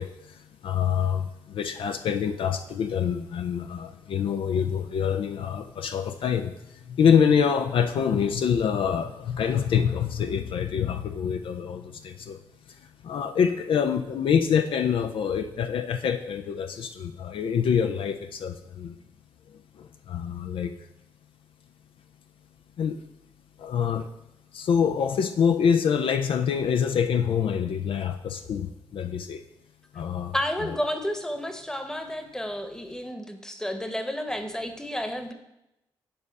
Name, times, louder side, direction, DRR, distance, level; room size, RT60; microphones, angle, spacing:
voice 1, 0.0-12.4 12.7-19.0 19.8-20.7 22.8-23.0 23.6-24.1 24.5-29.4 29.9-30.3 30.6-30.7, left 7 dB, 65° left, 8 dB, 0.4 m, -26 dB
voice 2, 30.3-35.3, equal, 5° left, 7 dB, 1.0 m, -31 dB
8.8 x 3.5 x 5.3 m, 0.91 s
supercardioid pair, 45°, 10 cm